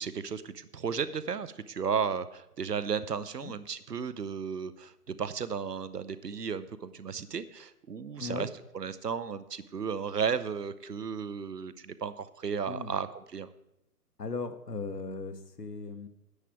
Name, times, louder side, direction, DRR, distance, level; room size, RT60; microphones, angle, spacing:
voice 1, 0.0-8.5 8.7-13.5, right 6 dB, 85° right, 14 dB, 0.8 m, -34 dB
voice 2, 8.2-8.5 12.7-12.9 14.2-16.1, left 3 dB, 90° left, 9 dB, 1.2 m, -37 dB
9.9 x 9.4 x 4.6 m, 0.85 s
figure-of-eight pair, 135°, 46 cm